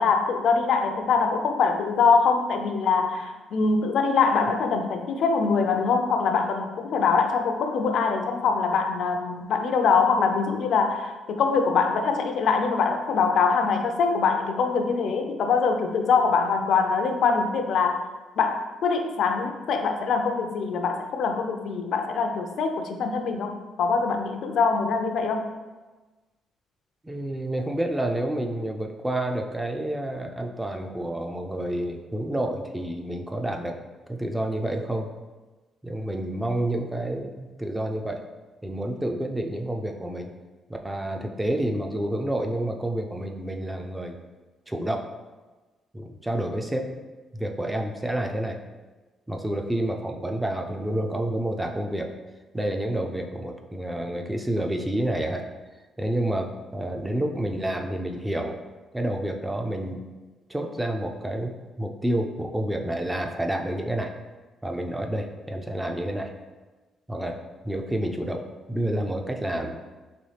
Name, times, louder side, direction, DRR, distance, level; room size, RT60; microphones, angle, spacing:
voice 1, 0.0-18.0 18.4-25.5, left 5 dB, 65° left, 5 dB, 0.4 m, -23 dB
voice 2, 27.0-33.8 34.1-35.1 35.8-38.2 38.6-40.3 40.8-44.2 44.7-45.1 45.9-46.9 47.3-48.6 49.3-52.1 52.5-55.5 56.0-58.6 58.9-60.0 60.5-64.1 64.6-66.3 67.1-68.4 68.7-69.8, right 1 dB, 10° right, 3 dB, 0.3 m, -29 dB
4.1 x 3.0 x 3.3 m, 1.2 s
cardioid pair, 135°, 0 cm